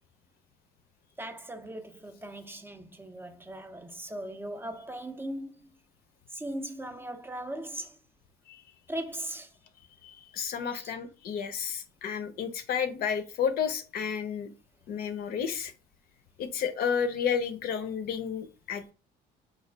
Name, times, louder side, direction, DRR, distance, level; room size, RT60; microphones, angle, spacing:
voice 1, 1.2-5.5 6.3-8.0 8.9-9.5 10.7-10.9, right 1 dB, 15° right, 0.4 m, -39 dB
voice 2, 10.0-14.5 14.9-15.7 16.4-18.9, left 7 dB, 65° left, 0.6 m, -31 dB
4.0 x 2.3 x 3.2 m
cardioid pair, 110°, 17 cm